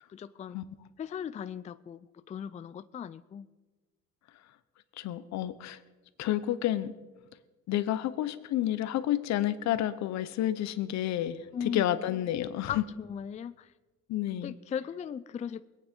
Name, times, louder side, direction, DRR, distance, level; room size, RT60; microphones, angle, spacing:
voice 1, 0.1-0.6 1.0-3.5 11.5-11.9 12.7-13.7 14.4-15.6, left 8 dB, 25° left, 13 dB, 0.4 m, -37 dB
voice 2, 5.0-5.8 6.2-6.9 7.7-12.8 14.1-14.5, left 12 dB, 70° left, 13 dB, 0.9 m, -30 dB
21.0 x 8.9 x 5.3 m, 1.2 s
cardioid pair, 115°, 29 cm